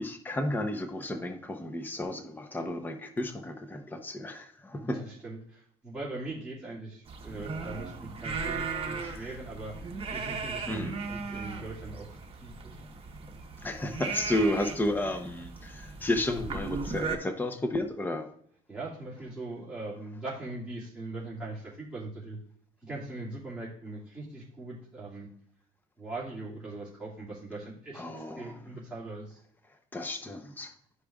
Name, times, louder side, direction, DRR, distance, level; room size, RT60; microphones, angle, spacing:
voice 1, 0.0-5.0 9.0-9.3 10.7-11.0 13.6-18.3 27.9-28.5 29.9-30.7, left 1 dB, 10° left, 7 dB, 0.7 m, -32 dB
voice 2, 4.9-12.9 18.7-22.4 22.8-25.3 26.0-29.4, right 2 dB, 5° right, -9 dB, 2.2 m, -41 dB
sound 1, 7.1-17.2, right 4 dB, 35° right, 1.2 m, -37 dB
11.5 x 4.9 x 2.4 m, 0.63 s
cardioid pair, 110°, 17 cm